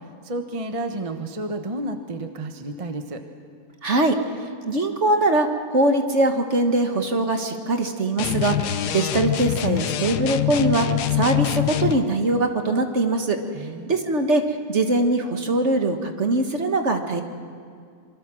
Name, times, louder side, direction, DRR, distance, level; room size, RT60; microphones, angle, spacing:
voice 1, 0.0-3.2 13.5-13.9, right 2 dB, 25° right, 6 dB, 1.1 m, -31 dB
voice 2, 3.8-4.2 4.6-13.4 13.9-14.4 14.7-17.2, right 2 dB, 45° right, 5 dB, 1.7 m, -22 dB
sound 1, 8.2-12.0, left 12 dB, 80° left, 1.3 m, -24 dB
26.5 x 24.0 x 6.3 m, 2.2 s
omnidirectional pair, 1.8 m